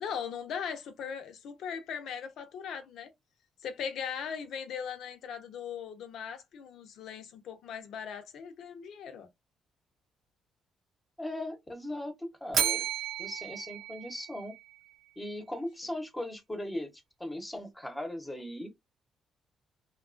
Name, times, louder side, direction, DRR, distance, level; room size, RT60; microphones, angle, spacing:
voice 1, 0.0-3.1 3.6-9.3, left 7 dB, 75° left, 0.7 m, -39 dB
voice 2, 11.2-12.9 13.2-14.5 15.2-16.9 17.2-18.7, left 1 dB, 10° left, 0.9 m, -38 dB
Bell, 12.5-14.8, right 9 dB, 65° right, 0.6 m, -33 dB
2.8 x 2.3 x 2.5 m
cardioid pair, 90°, 0 cm